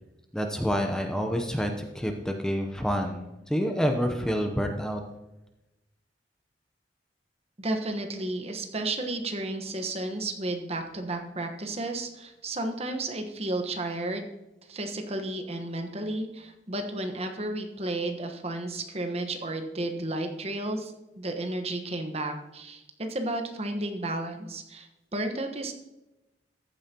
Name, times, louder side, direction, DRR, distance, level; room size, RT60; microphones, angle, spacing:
voice 1, 0.3-5.0, equal, 5° left, 4 dB, 0.7 m, -28 dB
voice 2, 7.6-14.3 14.7-25.7, right 2 dB, 35° right, 4 dB, 1.2 m, -32 dB
14.5 x 8.8 x 2.9 m, 0.98 s
head